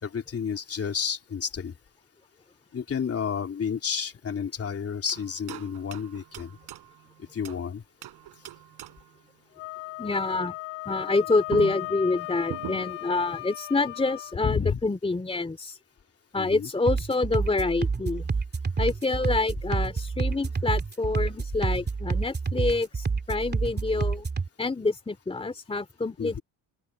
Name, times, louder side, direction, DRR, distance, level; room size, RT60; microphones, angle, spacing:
voice 1, 0.0-1.7 2.7-6.5 7.3-7.8 14.4-14.8 16.4-16.7 26.2-26.4, left 6 dB, 35° left, 3.4 m, -30 dB
sound 1, 5.1-7.7 8.0-9.2 11.1-11.2 11.5-13.1, right 13 dB, 70° right, 4.7 m, -41 dB
Wind instrument woodwind instrument, 9.6-14.3, left 21 dB, 85° left, 1.7 m, -37 dB
voice 2, 10.0-10.5 10.8-15.8 16.3-18.3 18.8-24.2 24.6-26.4, left 3 dB, 15° left, 2.7 m, -27 dB
sound 2, 16.9-24.5, right 4 dB, 25° right, 2.9 m, -28 dB
open air
cardioid pair, 115°, 40 cm